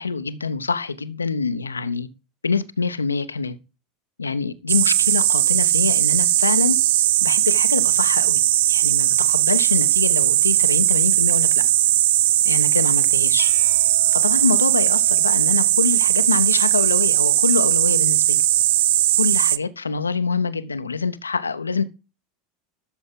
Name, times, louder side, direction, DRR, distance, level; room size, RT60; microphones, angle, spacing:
voice 1, 0.0-2.1 2.4-3.6 4.2-6.8 7.2-8.4 8.7-11.6 12.4-13.5 14.1-18.4 19.2-21.8, left 5 dB, 80° left, 0.8 m, -25 dB
sound 1, 4.7-19.6, right 14 dB, 60° right, 0.5 m, -18 dB
12.5 x 7.2 x 3.8 m
figure-of-eight pair, 80°, 0 cm